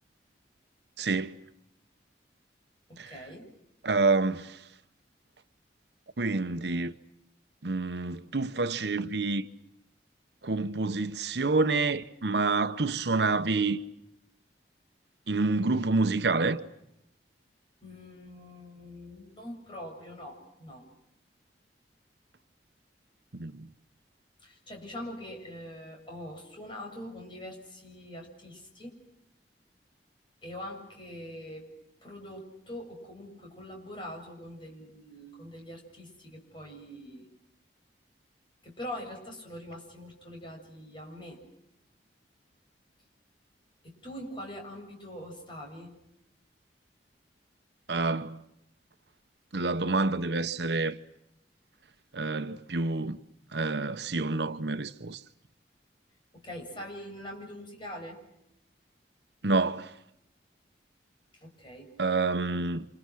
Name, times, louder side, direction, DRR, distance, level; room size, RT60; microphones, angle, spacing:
voice 1, 1.0-1.4 3.0-3.1 3.8-4.6 6.2-6.9 7.6-9.5 10.4-13.8 15.3-16.6 23.3-23.7 47.9-48.4 49.5-51.0 52.1-53.2 53.5-55.2 59.4-59.9 62.0-62.9, right 3 dB, 75° right, 1.0 m, -28 dB
voice 2, 2.9-3.5 17.8-20.9 24.4-29.0 30.4-31.7 32.0-37.3 38.6-41.4 43.8-46.0 56.3-58.2 61.3-61.9, left 1 dB, 30° left, 7.5 m, -43 dB
30.0 x 27.5 x 6.3 m
head